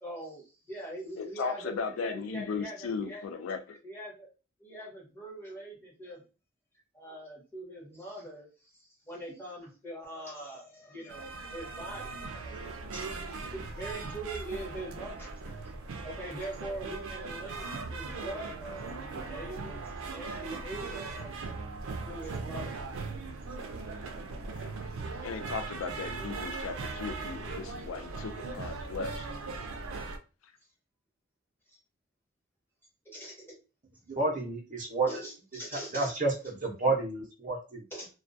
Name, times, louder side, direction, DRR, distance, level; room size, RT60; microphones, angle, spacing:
voice 1, 0.0-3.2 3.8-4.3 4.6-6.2 6.9-15.7 16.0-21.4 22.0-22.8 23.4-23.5 31.7-31.8 33.0-33.5 35.1-36.1 37.9-38.1, right 1 dB, 10° left, -4 dB, 1.0 m, -43 dB
voice 2, 1.2-3.8 24.5-24.7 25.2-29.3, left 5 dB, 80° left, 9 dB, 0.3 m, -36 dB
sound 1, 11.1-30.2, right 3 dB, 85° right, 0.4 m, -39 dB
voice 3, 34.1-35.1 35.9-36.3 36.6-37.8, right 3 dB, 40° right, 1 dB, 0.6 m, -29 dB
2.2 x 2.2 x 2.5 m, 0.32 s
head